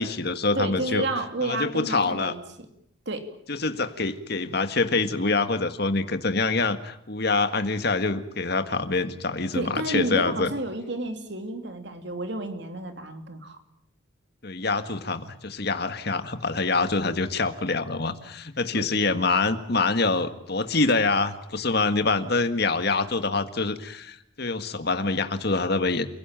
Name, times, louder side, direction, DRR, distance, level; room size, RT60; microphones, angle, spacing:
voice 1, 0.0-1.1 1.4-2.3 3.5-10.5 14.4-26.1, left 3 dB, 50° left, 9 dB, 1.8 m, -25 dB
voice 2, 0.5-2.7 3.1-3.3 9.5-13.6 18.7-18.9, right 1 dB, 55° right, 7 dB, 2.9 m, -31 dB
29.5 x 17.0 x 9.0 m, 0.75 s
head